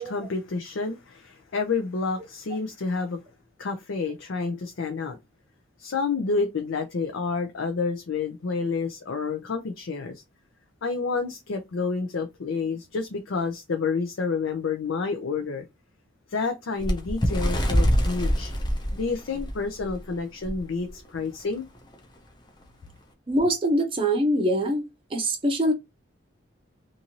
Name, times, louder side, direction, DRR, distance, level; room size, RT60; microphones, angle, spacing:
voice 1, 0.0-3.2 3.6-5.2 5.8-10.2 10.8-15.7 16.3-18.5 18.9-21.7, left 4 dB, 75° left, 0.5 m, -29 dB
Bird, 16.8-20.0 20.5-20.6 20.9-21.2 21.9-22.0, equal, 20° left, 0.5 m, -24 dB
voice 2, 23.3-24.8 25.1-25.7, right 1 dB, 25° right, 0.6 m, -23 dB
2.6 x 2.6 x 2.9 m
head